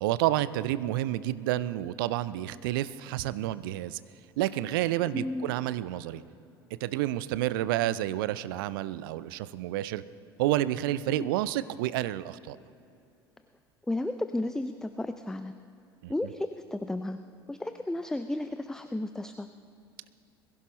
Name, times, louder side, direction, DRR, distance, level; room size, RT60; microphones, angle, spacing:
voice 1, 0.0-4.0 4.4-6.2 6.7-10.0 10.4-12.6 16.0-16.1, right 14 dB, 60° right, 17 dB, 0.5 m, -29 dB
voice 2, 5.1-5.5 11.1-11.3 13.9-15.5 16.1-17.2 17.5-19.5, left 1 dB, 5° left, 10 dB, 0.4 m, -33 dB
21.5 x 15.5 x 3.1 m, 2.6 s
figure-of-eight pair, 65°, 13 cm